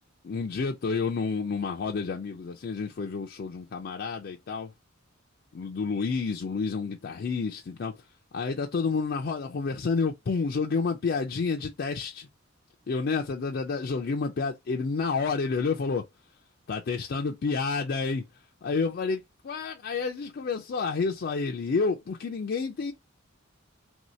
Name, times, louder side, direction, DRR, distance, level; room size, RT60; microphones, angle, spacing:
voice 1, 0.3-4.7 5.5-7.9 8.3-12.3 12.9-16.1 16.7-18.3 18.6-22.9, left 4 dB, 50° left, 0.4 m, -29 dB
2.9 x 2.7 x 3.0 m
head